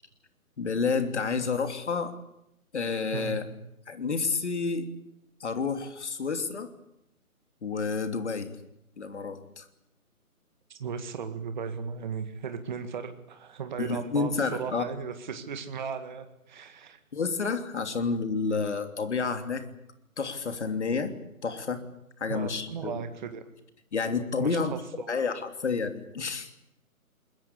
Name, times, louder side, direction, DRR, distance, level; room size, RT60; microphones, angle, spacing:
voice 1, 0.6-2.2 2.7-3.4 3.9-4.9 5.4-6.7 7.6-8.6 9.0-9.6 13.8-14.8 17.1-19.6 20.2-21.2 21.4-21.8 22.2-23.0 23.9-26.5, left 4 dB, 50° left, 8 dB, 3.0 m, -30 dB
voice 2, 10.8-17.0 22.3-23.4 24.4-25.2, right 6 dB, 30° right, 8 dB, 2.1 m, -36 dB
26.5 x 22.0 x 8.4 m, 0.82 s
figure-of-eight pair, 150°, 44 cm